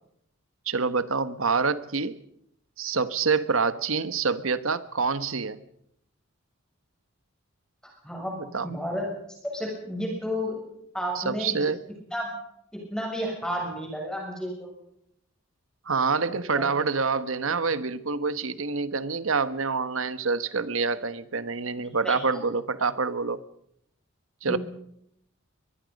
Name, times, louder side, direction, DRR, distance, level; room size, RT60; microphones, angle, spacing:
voice 1, 0.7-2.2 2.8-5.6 8.4-8.7 11.1-11.8 15.9-23.4 24.4-24.6, right 4 dB, 70° right, 13 dB, 1.2 m, -26 dB
voice 2, 8.6-9.1 9.4-10.6 10.9-11.6 12.1-12.3 12.9-14.7 16.3-16.6 22.0-22.1 24.5-24.6, equal, 5° left, -1 dB, 6.8 m, -31 dB
23.0 x 22.0 x 5.3 m, 0.74 s
head